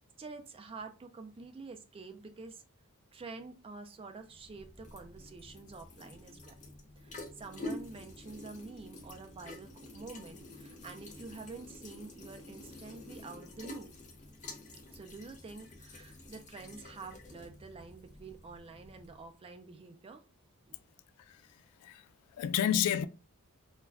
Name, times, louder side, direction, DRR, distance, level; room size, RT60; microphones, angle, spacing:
voice 1, 0.2-2.6 3.1-6.5 7.0-13.9 14.9-20.2 20.7-20.8, right 4 dB, 25° right, 0.4 m, -48 dB
sound 1, 4.2-19.3, left 2 dB, 35° left, 0.6 m, -48 dB
voice 2, 21.2-23.1, left 10 dB, 80° left, 0.3 m, -32 dB
2.4 x 2.1 x 3.3 m
head